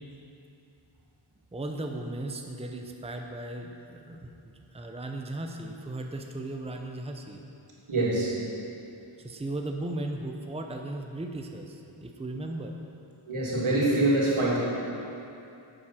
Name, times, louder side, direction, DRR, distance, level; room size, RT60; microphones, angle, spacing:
voice 1, 1.5-7.4 9.2-12.7, right 1 dB, 15° right, 3 dB, 0.8 m, -36 dB
voice 2, 7.9-8.4 13.3-14.6, right 2 dB, 85° right, -5 dB, 2.9 m, -25 dB
9.9 x 7.9 x 6.3 m, 2.7 s
wide cardioid pair, 80°, 48 cm